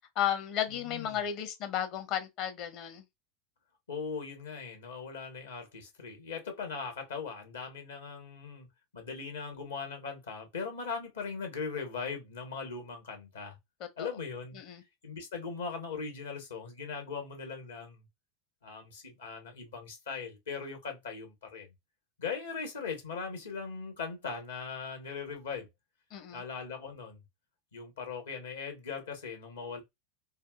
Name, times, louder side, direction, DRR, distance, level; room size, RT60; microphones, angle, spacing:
voice 1, 0.2-3.0 13.8-14.1 14.6-14.8 26.1-26.4, left 10 dB, 50° left, 0.8 m, -34 dB
voice 2, 0.7-1.2 3.9-8.7 8.9-13.6 14.0-14.6 15.0-18.0 18.6-21.7 22.2-25.7 26.3-27.2 27.7-29.8, left 5 dB, 75° left, 1.1 m, -39 dB
3.3 x 2.4 x 2.3 m
figure-of-eight pair, 80°, 0 cm